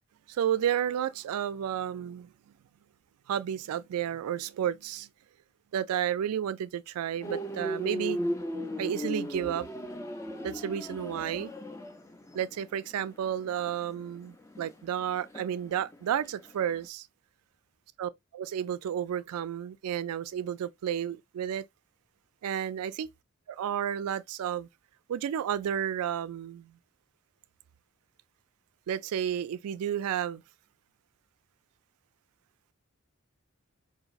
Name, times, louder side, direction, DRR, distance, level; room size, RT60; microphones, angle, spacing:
voice 1, 0.3-2.3 3.3-5.1 5.7-8.2 8.8-9.7 10.4-11.5 12.3-17.1 18.0-21.6 22.4-23.1 23.5-24.7 25.1-26.8 28.9-30.4, right 9 dB, 90° right, 0.3 m, -32 dB
sound 1, 7.2-16.3 16.6-16.8, equal, 15° left, 0.4 m, -36 dB
4.0 x 2.6 x 2.4 m
head